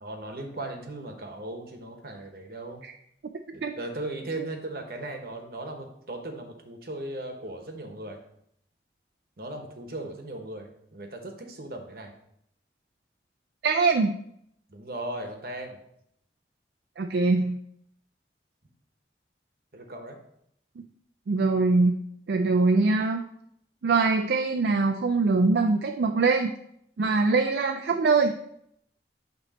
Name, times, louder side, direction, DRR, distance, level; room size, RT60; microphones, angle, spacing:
voice 1, 0.0-2.8 3.5-8.2 9.4-12.1 14.7-15.8 19.7-20.2, right 2 dB, 55° right, 4 dB, 1.0 m, -37 dB
voice 2, 13.6-14.2 17.0-17.6 21.3-21.9 22.3-23.2 23.8-26.5 27.0-28.3, right 3 dB, 70° right, 4 dB, 0.4 m, -23 dB
9.0 x 3.1 x 4.3 m, 0.72 s
head